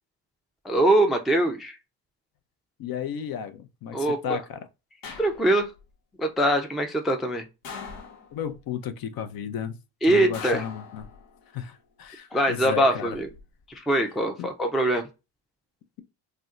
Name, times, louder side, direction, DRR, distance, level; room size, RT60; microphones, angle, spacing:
voice 1, 0.6-1.8 3.9-4.4 5.2-5.7 6.2-7.4 10.0-10.6 12.3-13.3 13.7-15.0, right 1 dB, ahead, 0.4 m, -23 dB
voice 2, 2.8-4.6 8.3-9.8 10.1-11.1 11.5-13.2 14.4-14.5, left 8 dB, 50° left, 0.6 m, -33 dB
sound 1, 5.0-5.8 7.6-8.6 10.3-11.5 12.9-13.4, left 5 dB, 80° left, 1.0 m, -41 dB
2.6 x 2.2 x 3.5 m
supercardioid pair, 80°, 47 cm